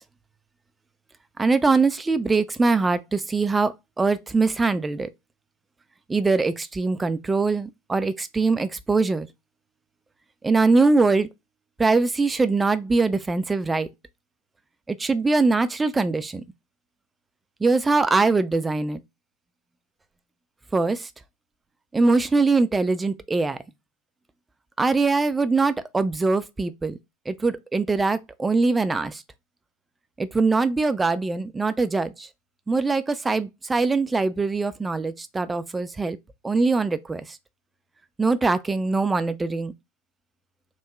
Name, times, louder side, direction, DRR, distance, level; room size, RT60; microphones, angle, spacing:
voice 1, 1.4-5.1 6.1-9.3 10.4-11.3 11.8-13.9 14.9-16.4 17.6-19.0 20.7-21.1 21.9-23.6 24.8-27.0 27.3-29.2 30.2-32.3 32.7-36.2 36.4-37.4 38.2-39.7, right 3 dB, 10° right, 0.3 m, -22 dB
3.5 x 2.2 x 3.0 m
figure-of-eight pair, 90°, 0 cm